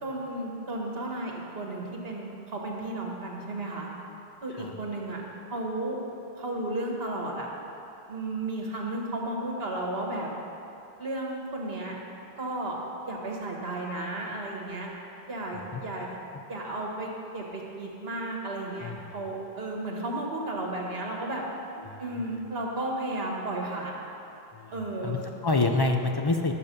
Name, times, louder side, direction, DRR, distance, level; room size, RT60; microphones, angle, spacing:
voice 1, 0.0-3.9 4.4-5.2 5.5-6.0 6.4-7.5 8.1-10.3 11.0-12.0 12.4-12.8 13.1-14.9 15.3-16.1 16.5-21.4 22.0-23.9 24.7-25.1, right 2 dB, 65° right, -1 dB, 1.6 m, -33 dB
voice 2, 21.9-22.3 24.5-24.7 25.0-26.6, left 3 dB, 35° left, 4 dB, 0.4 m, -28 dB
11.0 x 6.9 x 5.2 m, 2.8 s
omnidirectional pair, 1.1 m